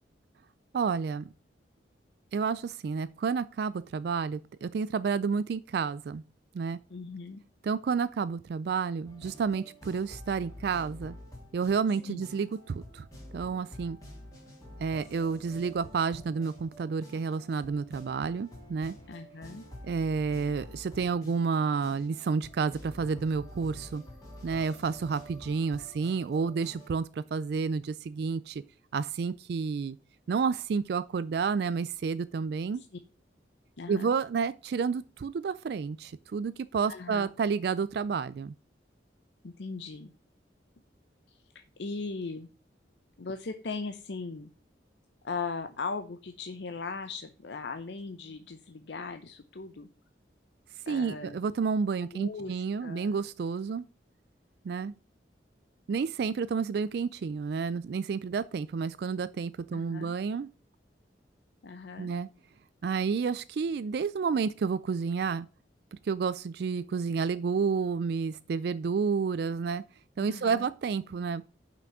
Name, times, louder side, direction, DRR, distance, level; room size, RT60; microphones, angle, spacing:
voice 1, 0.7-1.3 2.3-6.2 6.5-6.8 7.6-11.1 11.5-13.1 13.3-14.0 14.8-18.9 19.8-24.0 24.4-28.6 28.9-30.0 30.3-32.8 33.9-38.5 50.9-53.8 54.6-54.9 55.9-60.5 62.0-62.3 62.8-65.5 66.0-69.8 70.2-71.4, right 5 dB, 60° right, 0.3 m, -30 dB
voice 2, 6.9-7.4 12.1-12.2 19.1-19.6 32.7-33.0 33.8-34.2 36.9-37.3 39.4-40.1 41.3-42.5 43.2-44.5 45.2-49.9 50.9-51.4 52.0-53.1 59.7-60.2 61.6-62.1 70.2-70.7, left 4 dB, 75° left, 0.6 m, -39 dB
sound 1, 9.1-26.9, left 1 dB, 20° left, 3.0 m, -48 dB
6.0 x 5.9 x 6.7 m
head